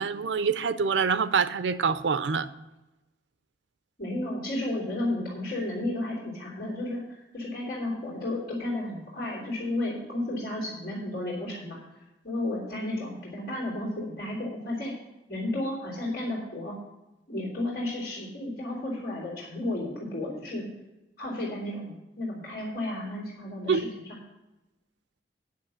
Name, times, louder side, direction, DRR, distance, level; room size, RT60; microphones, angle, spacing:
voice 1, 0.0-2.5 23.7-23.9, right 5 dB, 90° right, 14 dB, 0.6 m, -25 dB
voice 2, 4.0-7.0 7.3-11.8 12.2-14.9 15.3-16.8 17.3-20.7 21.2-24.2, left 1 dB, 50° left, -7 dB, 3.4 m, -33 dB
9.5 x 7.5 x 6.4 m, 1.0 s
head